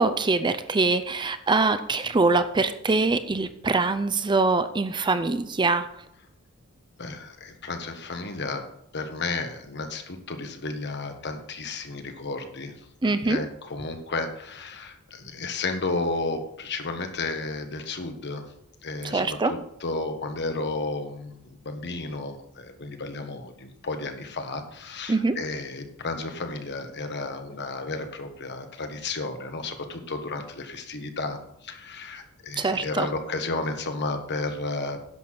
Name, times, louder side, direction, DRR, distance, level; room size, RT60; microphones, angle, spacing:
voice 1, 0.0-5.9 13.0-13.4 19.0-19.5 25.1-25.4 32.6-33.1, right 3 dB, 20° right, 12 dB, 0.5 m, -23 dB
voice 2, 7.0-8.6 8.9-12.7 13.0-18.5 18.8-35.0, left 3 dB, 50° left, 6 dB, 1.4 m, -33 dB
11.0 x 6.9 x 5.9 m, 0.76 s
head